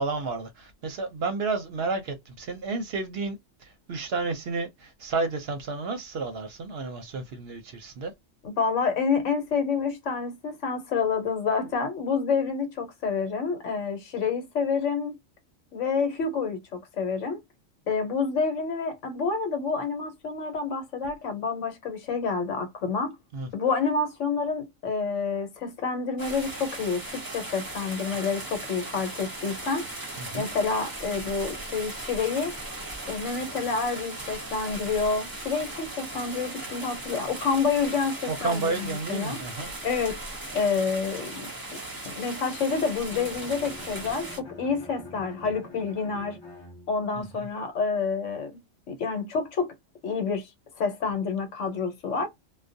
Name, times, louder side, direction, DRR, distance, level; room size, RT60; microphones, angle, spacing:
voice 1, 0.0-8.1 23.3-23.5 30.2-30.5 38.3-39.7 47.2-47.5, right 3 dB, 60° right, 0.7 m, -31 dB
voice 2, 8.4-15.2 15.7-17.4 17.9-23.2 23.5-29.8 30.3-32.5 33.1-39.4 39.8-40.2 40.5-41.8 42.0-46.4 46.9-48.6 48.9-49.7 50.0-50.5 50.8-52.3, left 5 dB, 70° left, 1.1 m, -28 dB
sound 1, 26.2-44.4, right 2 dB, 20° right, 0.6 m, -38 dB
Bowed string instrument, 42.9-47.2, left 2 dB, 30° left, 0.5 m, -46 dB
2.3 x 2.2 x 2.6 m
omnidirectional pair, 1.3 m